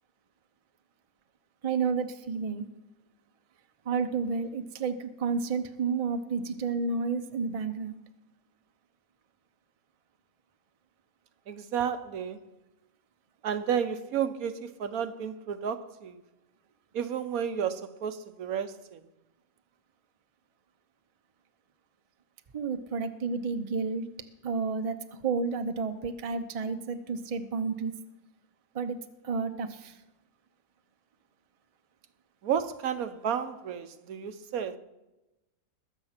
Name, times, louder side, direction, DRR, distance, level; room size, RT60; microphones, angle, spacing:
voice 1, 1.6-2.7 3.9-7.9 22.5-24.1 24.4-27.9 28.7-29.0 29.2-30.0, right 5 dB, 35° right, 0.6 m, -31 dB
voice 2, 11.5-12.4 13.4-16.2 16.9-19.0 32.4-34.8, right 8 dB, 75° right, 1.2 m, -32 dB
20.5 x 7.4 x 5.8 m
omnidirectional pair, 1.5 m